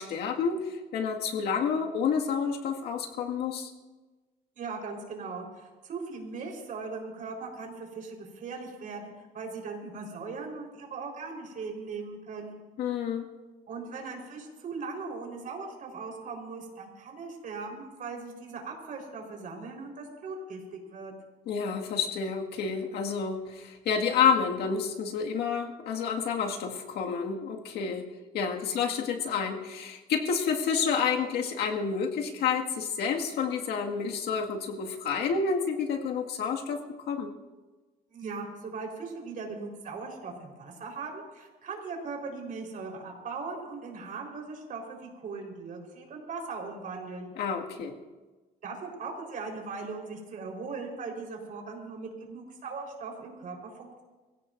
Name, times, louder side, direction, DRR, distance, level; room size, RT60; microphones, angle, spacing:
voice 1, 0.0-3.7 12.8-13.2 21.5-28.1 28.3-37.3 47.4-48.0, left 6 dB, 75° left, 1 dB, 1.9 m, -29 dB
voice 2, 4.6-12.6 13.7-21.1 38.1-47.3 48.6-54.0, right 4 dB, 50° right, 1 dB, 4.2 m, -39 dB
24.0 x 16.0 x 2.6 m, 1.2 s
cardioid pair, 110°, 17 cm